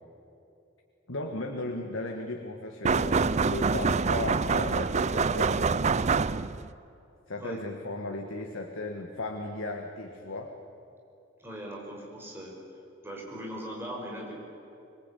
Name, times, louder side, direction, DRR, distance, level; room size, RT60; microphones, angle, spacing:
voice 1, 1.1-5.8 7.3-10.5, left 2 dB, 85° left, 2 dB, 1.9 m, -36 dB
sound 1, 2.8-6.7, right 4 dB, 35° right, 0.5 m, -26 dB
voice 2, 11.4-12.5 13.0-14.3, equal, 10° right, -2 dB, 5.8 m, -39 dB
25.5 x 21.5 x 8.5 m, 2.8 s
head